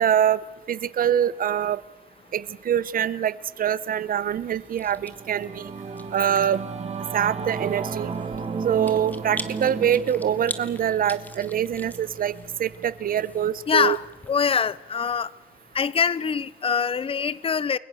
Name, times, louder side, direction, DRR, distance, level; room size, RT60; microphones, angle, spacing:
voice 1, 0.0-1.8 2.3-5.7 6.1-6.7 7.1-8.1 8.6-12.3 12.6-14.0, right 9 dB, 70° right, 1.0 m, -24 dB
Chewing mastication, 4.1-14.3, left 1 dB, 10° left, 1.5 m, -43 dB
Singing / Musical instrument, 4.6-14.3, right 5 dB, 45° right, 2.0 m, -35 dB
voice 2, 13.7-15.3 15.7-17.8, left 6 dB, 40° left, 0.8 m, -24 dB
29.5 x 22.5 x 6.4 m
wide cardioid pair, 155°, 15 cm